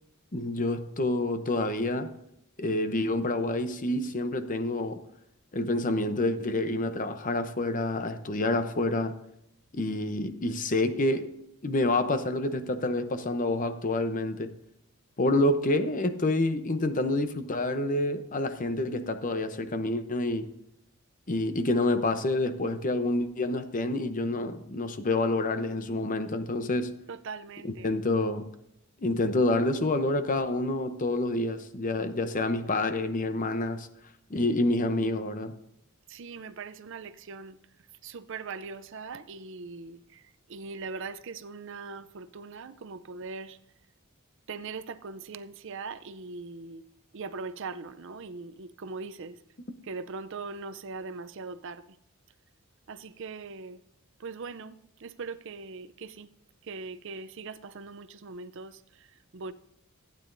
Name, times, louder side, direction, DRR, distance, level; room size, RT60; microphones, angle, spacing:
voice 1, 0.3-2.1 2.6-5.0 5.5-9.2 9.7-11.4 11.6-14.5 15.2-20.5 21.3-27.0 27.6-28.5 29.0-33.9 34.3-35.5, left 2 dB, 35° left, 0.7 m, -28 dB
voice 2, 27.1-27.9 36.1-37.6 38.0-40.2 40.5-43.6 44.5-46.8 47.1-49.4 49.8-51.8 52.9-53.8 54.2-56.3 56.6-59.5, right 4 dB, 60° right, 0.5 m, -40 dB
15.0 x 9.2 x 2.6 m
head